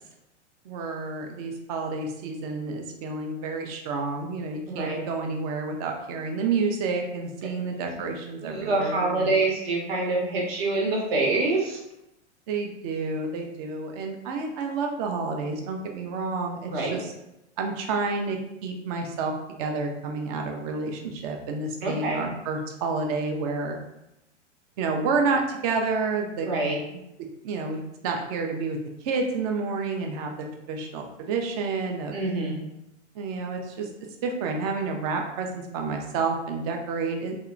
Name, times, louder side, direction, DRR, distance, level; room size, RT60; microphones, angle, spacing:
voice 1, 0.7-9.3 12.5-17.1 17.6-19.3 19.6-23.8 24.8-26.5 26.9-27.0 27.4-28.8 29.0-32.2 33.2-33.9 34.2-37.4, right 4 dB, 35° right, 3 dB, 0.4 m, -29 dB
voice 2, 4.7-5.0 8.4-11.8 16.7-17.0 21.8-22.2 26.4-26.8 32.1-32.6, right 2 dB, 55° right, -2 dB, 0.9 m, -26 dB
2.6 x 2.1 x 2.4 m, 0.86 s
figure-of-eight pair, 100°, 36 cm